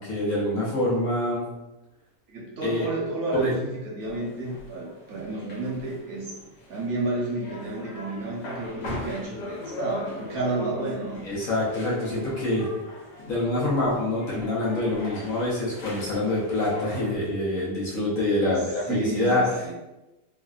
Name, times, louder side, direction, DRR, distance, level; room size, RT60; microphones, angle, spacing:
voice 1, 0.0-1.4 2.6-2.9 3.3-3.5 11.2-12.7 13.2-19.7, left 1 dB, 60° left, -7 dB, 1.1 m, -26 dB
voice 2, 2.3-6.3 6.7-11.2 18.4-18.6 18.8-19.7, right 2 dB, 65° right, -5 dB, 1.3 m, -31 dB
sound 1, 4.0-17.3, left 1 dB, 85° left, 1.4 m, -41 dB
3.2 x 2.6 x 2.3 m, 1.0 s
omnidirectional pair, 1.8 m